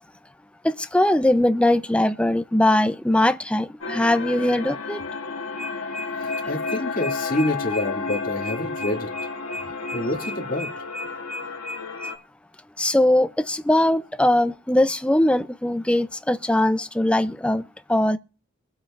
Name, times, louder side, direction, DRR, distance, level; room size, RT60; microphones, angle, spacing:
voice 1, 0.6-5.0 12.8-17.6 17.9-18.2, left 1 dB, 5° left, 0.4 m, -21 dB
sound 1, 3.8-12.2, left 4 dB, 85° left, 1.3 m, -31 dB
sound 2, 5.5-12.1, equal, 20° right, 2.6 m, -35 dB
voice 2, 6.2-9.1 9.9-10.7, left 1 dB, 40° left, 2.5 m, -27 dB
23.5 x 7.9 x 2.5 m
head